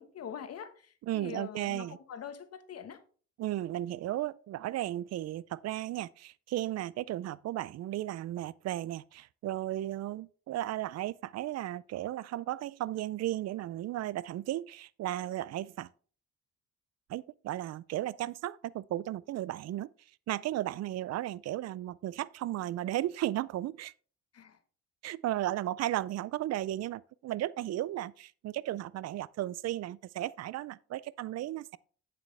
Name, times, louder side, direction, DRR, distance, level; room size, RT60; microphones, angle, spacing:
voice 1, 0.0-3.0 24.3-24.6, left 8 dB, 55° left, 1.2 m, -44 dB
voice 2, 1.0-2.0 3.4-15.9 17.1-19.9 20.3-23.9 25.0-31.8, right 14 dB, 60° right, 0.4 m, -35 dB
8.4 x 7.5 x 3.3 m
cardioid pair, 90°, 30 cm